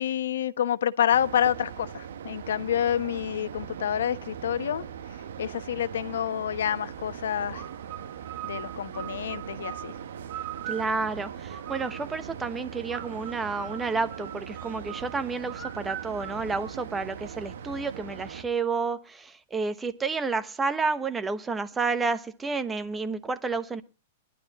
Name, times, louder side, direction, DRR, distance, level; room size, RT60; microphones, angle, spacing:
voice 1, 0.0-4.8 5.4-7.6 8.4-9.9, left 10 dB, 85° left, 1.0 m, -28 dB
sound 1, 1.1-18.4, right 8 dB, 80° right, 1.1 m, -40 dB
sound 2, 7.5-12.2 12.9-17.3, right 11 dB, 40° right, 2.7 m, -42 dB
voice 2, 10.7-23.8, right 4 dB, 10° right, 1.0 m, -30 dB
21.0 x 11.5 x 2.9 m
supercardioid pair, 160°, 0 cm